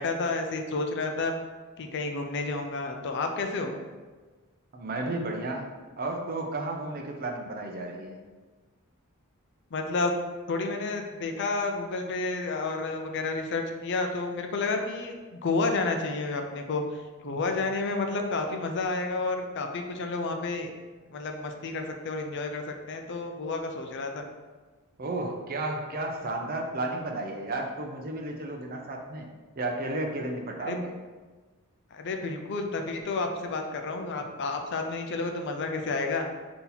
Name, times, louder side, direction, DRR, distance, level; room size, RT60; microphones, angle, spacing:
voice 1, 0.0-1.3 1.8-3.7 9.7-10.2 10.5-20.7 21.1-24.2 30.7-30.8 31.9-36.3, left 3 dB, 55° left, 4 dB, 0.5 m, -30 dB
voice 2, 4.7-5.7 6.0-8.2 25.0-29.3 29.6-30.9, right 2 dB, 40° right, 2 dB, 0.5 m, -33 dB
4.0 x 2.8 x 4.0 m, 1.3 s
head